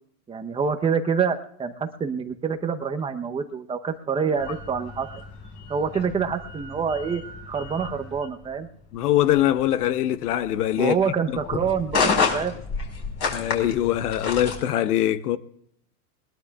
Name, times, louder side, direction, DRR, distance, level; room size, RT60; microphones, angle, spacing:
voice 1, 0.3-5.1 5.7-7.2 7.5-8.7 10.8-12.6, right 6 dB, 10° right, 0.8 m, -26 dB
sound 1, 4.4-14.6, left 5 dB, 30° left, 4.8 m, -30 dB
voice 2, 8.9-11.0 13.3-15.4, left 12 dB, 75° left, 1.1 m, -22 dB
21.0 x 21.0 x 2.3 m
supercardioid pair, 140°, 46 cm